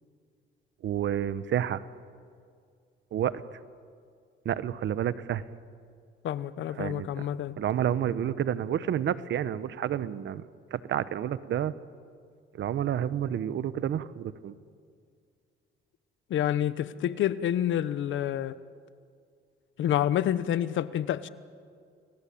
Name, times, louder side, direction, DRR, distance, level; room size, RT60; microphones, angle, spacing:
voice 1, 0.8-1.8 3.1-3.4 4.4-5.4 6.8-7.3 7.6-10.4 10.7-11.7 12.5-14.5, right 10 dB, 65° right, 15 dB, 1.1 m, -29 dB
voice 2, 6.2-7.5 16.3-18.6 19.8-21.3, left 11 dB, 75° left, 15 dB, 1.0 m, -28 dB
29.5 x 20.5 x 8.6 m, 2.2 s
cardioid pair, 90°, 20 cm